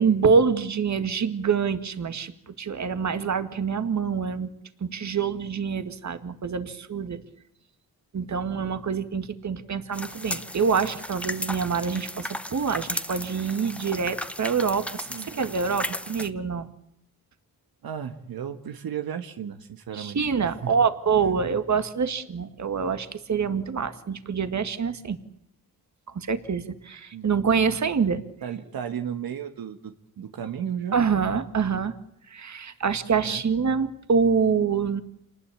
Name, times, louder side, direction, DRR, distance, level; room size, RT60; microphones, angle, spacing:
voice 1, 0.0-4.5 4.8-7.2 8.1-16.7 19.9-25.2 26.1-28.2 30.9-31.9 32.3-35.0, right 6 dB, 50° right, 10 dB, 1.9 m, -26 dB
sound 1, 9.9-16.3, left 1 dB, 5° left, 1.1 m, -35 dB
voice 2, 17.8-20.7 21.2-21.5 27.1-27.5 28.4-31.0 33.2-33.4, right 8 dB, 80° right, 7 dB, 1.5 m, -35 dB
27.5 x 19.5 x 8.6 m, 0.78 s
cardioid pair, 90°, 35 cm